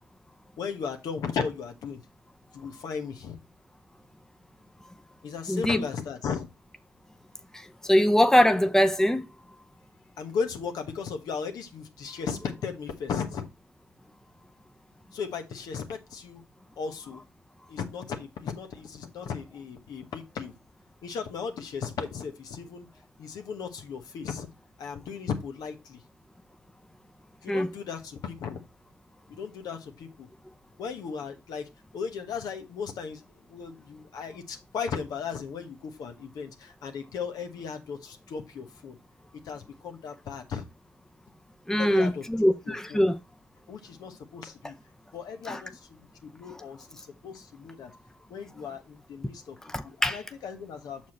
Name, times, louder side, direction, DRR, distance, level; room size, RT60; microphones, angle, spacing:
voice 1, 0.6-2.0 2.5-3.4 5.2-6.5 10.2-13.4 15.1-16.4 16.8-17.2 17.7-20.5 21.0-22.9 23.2-24.5 24.8-26.0 27.4-28.6 29.3-30.3 30.8-31.7 31.9-33.2 33.5-39.0 39.4-40.6 41.8-43.0 43.7-44.7 45.1-47.9 48.3-49.6 49.8-51.0, left 6 dB, 75° left, 1.2 m, -36 dB
voice 2, 5.5-5.8 7.5-9.3 27.5-27.7 41.7-43.2 45.4-45.6 46.5-46.6 49.6-50.2, equal, 5° left, 0.7 m, -23 dB
6.2 x 4.6 x 4.3 m
hypercardioid pair, 45°, 7 cm